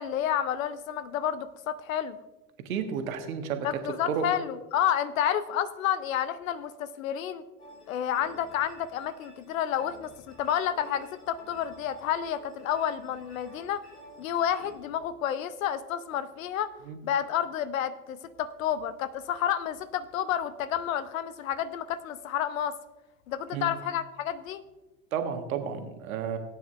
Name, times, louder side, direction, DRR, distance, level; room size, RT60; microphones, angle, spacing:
voice 1, 0.0-2.2 3.6-7.4 7.9-13.8 14.2-16.7 17.0-22.8 23.3-24.6, left 10 dB, 65° left, 14 dB, 0.8 m, -30 dB
voice 2, 2.6-3.7 4.1-4.3 16.9-17.0 23.5-23.7 25.1-26.4, right 7 dB, 65° right, 6 dB, 1.5 m, -31 dB
sound 1, 7.6-14.8, equal, 80° left, 3.6 m, -52 dB
18.0 x 9.2 x 2.5 m, 1.1 s
figure-of-eight pair, 75°, 44 cm